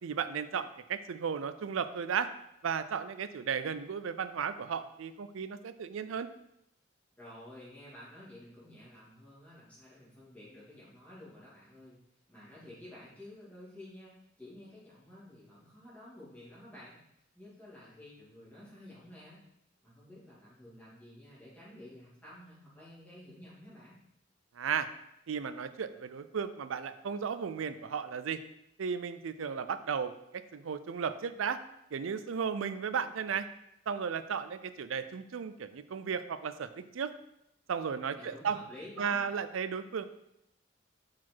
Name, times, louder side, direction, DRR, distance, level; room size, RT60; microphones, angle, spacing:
voice 1, 0.0-2.3 2.6-6.3 24.6-24.9 25.3-28.4 28.8-31.6 31.9-33.5 33.9-37.1 37.7-38.6 39.0-40.1, right 6 dB, 90° right, 12 dB, 0.4 m, -35 dB
voice 2, 7.2-12.0 12.3-17.1 17.3-19.4 19.8-24.0 38.1-39.4, left 1 dB, 10° left, -9 dB, 2.6 m, -51 dB
5.8 x 4.9 x 4.6 m, 0.82 s
head